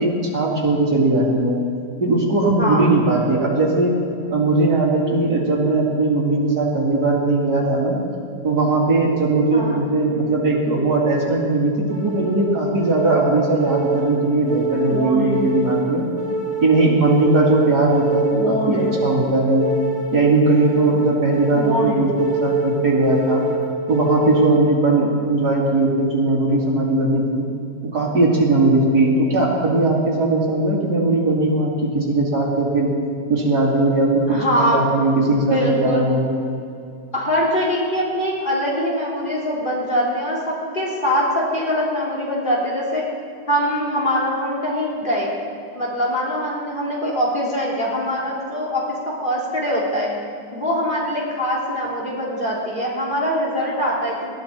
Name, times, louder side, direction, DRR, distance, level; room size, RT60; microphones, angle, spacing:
voice 1, 0.0-1.6 2.0-4.0 4.3-8.0 8.4-16.1 16.6-19.7 20.1-23.4 23.9-27.5 27.9-32.9 33.3-36.3, right 2 dB, 65° right, -3 dB, 3.1 m, -19 dB
voice 2, 2.6-2.9 9.5-9.8 34.3-34.8 35.3-36.0 37.1-43.1 43.5-45.3 45.7-50.1 50.5-54.2, equal, 30° left, -5 dB, 3.7 m, -23 dB
sound 1, 11.9-24.9, right 1 dB, 80° left, 3.2 m, -25 dB
20.0 x 14.0 x 4.5 m, 2.4 s
omnidirectional pair, 1.8 m